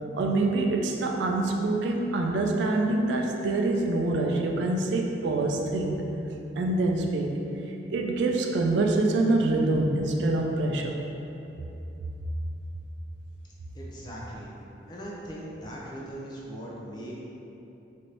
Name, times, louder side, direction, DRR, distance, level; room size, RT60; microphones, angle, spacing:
voice 1, 0.1-6.0 6.6-7.3 7.9-11.0, right 2 dB, 70° right, 1 dB, 0.3 m, -25 dB
voice 2, 13.7-14.5 14.9-17.2, equal, 25° left, -5 dB, 0.4 m, -39 dB
3.2 x 2.6 x 2.9 m, 2.9 s
head